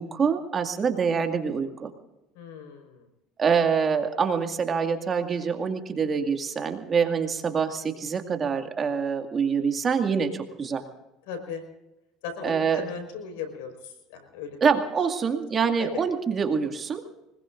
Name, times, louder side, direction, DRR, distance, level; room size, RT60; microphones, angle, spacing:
voice 1, 0.0-1.9 3.4-10.8 12.4-12.9 14.6-17.0, right 6 dB, 35° right, 5 dB, 2.2 m, -25 dB
voice 2, 2.3-3.1 11.3-11.6 12.2-14.6 15.8-16.0, left 6 dB, 85° left, 5 dB, 5.1 m, -37 dB
25.0 x 21.0 x 2.6 m, 0.94 s
supercardioid pair, 105°, 0 cm